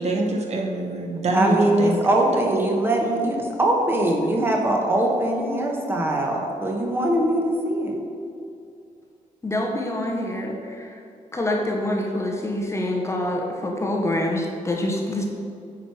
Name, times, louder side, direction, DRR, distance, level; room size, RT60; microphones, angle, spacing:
voice 1, 0.0-2.0 2.5-2.6, right 2 dB, 50° right, 0 dB, 0.9 m, -24 dB
voice 2, 1.3-7.9, right 1 dB, 15° right, 0 dB, 1.0 m, -22 dB
voice 3, 9.4-10.9 11.3-15.3, left 1 dB, 20° left, 0 dB, 0.7 m, -26 dB
8.8 x 4.7 x 4.7 m, 2.5 s
wide cardioid pair, 170°, 14 cm